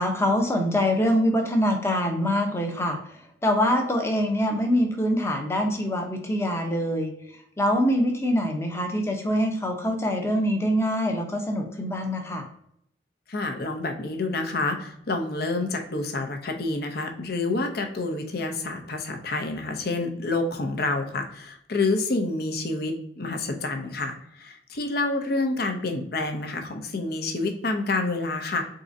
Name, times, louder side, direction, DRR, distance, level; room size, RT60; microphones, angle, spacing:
voice 1, 0.0-3.0 3.4-7.1 7.6-12.4, equal, 15° left, 3 dB, 0.7 m, -24 dB
voice 2, 13.3-28.6, left 3 dB, 55° left, 5 dB, 0.7 m, -28 dB
4.0 x 3.8 x 2.6 m, 0.70 s
head